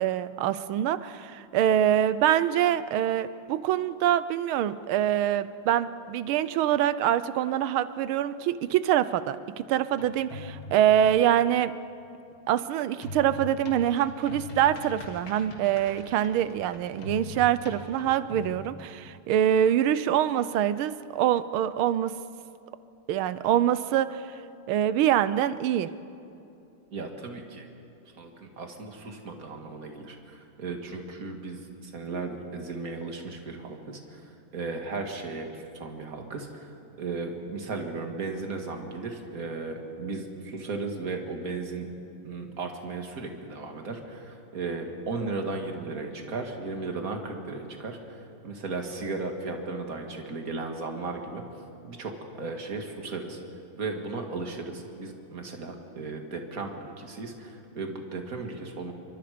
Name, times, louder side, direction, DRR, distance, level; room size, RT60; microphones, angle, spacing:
voice 1, 0.0-11.7 12.5-22.1 23.1-24.2 24.7-25.9, right 11 dB, 80° right, 14 dB, 1.5 m, -25 dB
sound 1, 9.9-11.0 13.0-18.6, left 2 dB, 75° left, 3.4 m, -41 dB
voice 2, 26.9-27.7 28.1-41.9 42.2-51.4 51.8-53.4 53.8-58.9, right 3 dB, 45° right, 3 dB, 2.4 m, -36 dB
28.5 x 24.0 x 5.1 m, 2.7 s
omnidirectional pair, 2.3 m